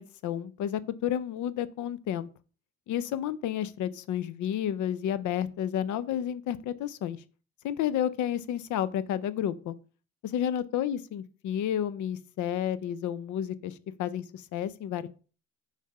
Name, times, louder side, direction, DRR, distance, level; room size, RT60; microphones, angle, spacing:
voice 1, 0.0-2.3 2.9-7.2 7.6-9.7 10.2-15.1, left 10 dB, 75° left, 0.6 m, -31 dB
6.5 x 3.4 x 5.5 m
cardioid pair, 90°, 30 cm